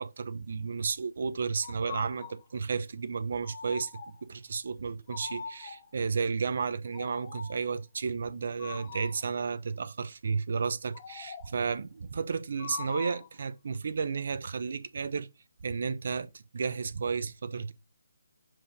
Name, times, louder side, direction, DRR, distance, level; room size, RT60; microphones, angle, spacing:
voice 1, 0.0-3.9 4.3-15.3 15.6-17.7, right 5 dB, 50° right, 0.6 m, -32 dB
sound 1, 1.6-2.5 3.4-4.3 5.1-6.0 6.9-7.7 8.6-9.3 10.9-11.7 12.6-13.4, left 7 dB, 25° left, 1.2 m, -43 dB
7.5 x 2.6 x 5.1 m
figure-of-eight pair, 145°, 0 cm